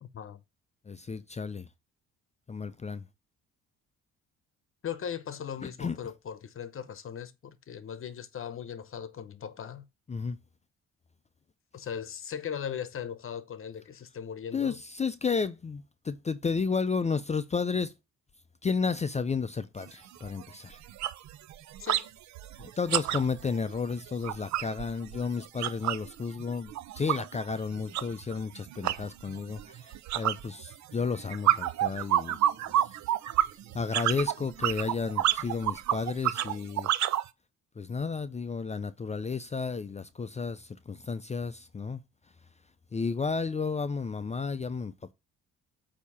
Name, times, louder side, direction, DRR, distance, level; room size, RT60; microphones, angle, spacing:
voice 1, 0.0-0.4 4.8-9.9 11.7-14.8 21.8-22.1, left 8 dB, 45° left, 0.8 m, -38 dB
voice 2, 0.9-1.7 2.5-3.0 5.8-6.0 10.1-10.4 14.5-17.9 18.6-20.8 22.6-32.4 33.7-36.9 37.8-42.0 42.9-45.1, left 5 dB, 25° left, 0.5 m, -32 dB
sound 1, 19.8-19.9 20.2-20.4 20.7-22.1 22.4-26.1 26.4-37.3, right 12 dB, 65° right, 0.6 m, -29 dB
8.3 x 2.9 x 5.5 m
cardioid pair, 90°, 30 cm